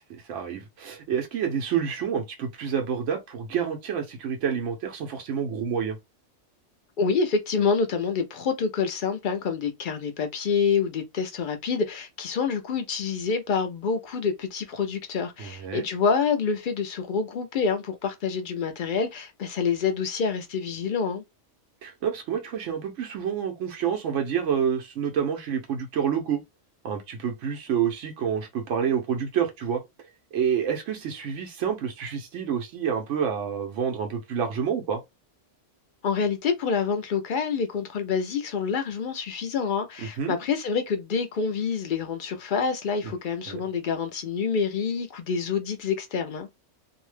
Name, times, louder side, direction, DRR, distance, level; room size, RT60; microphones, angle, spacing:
voice 1, 0.1-6.0 15.4-15.9 21.8-26.4 26.8-35.0 40.0-40.3 43.0-43.1 43.5-43.6, right 7 dB, 90° right, 1.0 m, -28 dB
voice 2, 7.0-21.2 36.0-46.5, left 5 dB, 60° left, 0.6 m, -27 dB
2.7 x 2.1 x 3.1 m
omnidirectional pair, 1.2 m